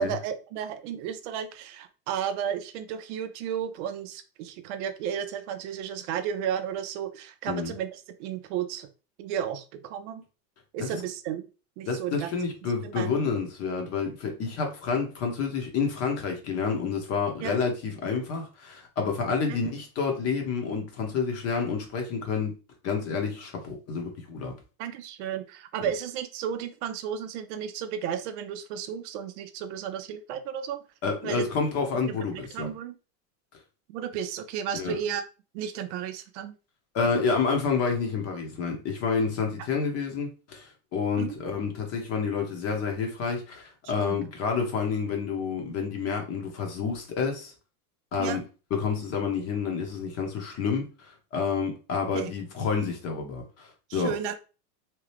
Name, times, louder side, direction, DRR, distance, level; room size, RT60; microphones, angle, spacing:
voice 1, 0.0-8.9 9.2-10.2 10.7-11.5 11.8-12.3 12.8-13.2 17.4-17.6 19.5-19.6 24.8-30.8 31.2-31.5 32.1-32.2 32.5-33.0 33.9-35.2 35.5-36.5 41.2-41.4 43.8-44.2 48.2-48.4 52.1-52.3 53.9-54.3, right 8 dB, 50° right, 0.5 m, -33 dB
voice 2, 11.9-22.5 22.8-24.5 25.8-25.9 31.0-32.7 34.7-34.9 36.9-47.5 48.1-48.4 48.7-54.1, left 5 dB, 30° left, 0.9 m, -29 dB
2.9 x 2.3 x 3.2 m
supercardioid pair, 125°, 47 cm